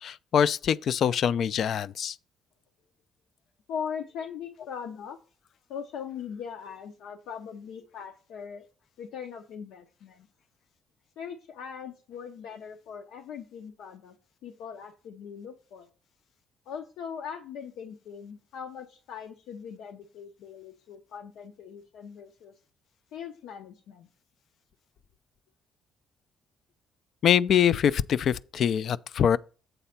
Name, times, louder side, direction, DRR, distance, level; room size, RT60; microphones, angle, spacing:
voice 1, 0.0-2.2 27.2-29.4, left 8 dB, 50° left, 0.3 m, -24 dB
voice 2, 3.7-5.2 5.7-8.7 9.0-10.3 11.2-14.2 14.4-15.9 16.7-22.5 23.1-24.1, left 7 dB, 85° left, 0.7 m, -40 dB
8.0 x 4.2 x 5.7 m
cardioid pair, 145°, 0 cm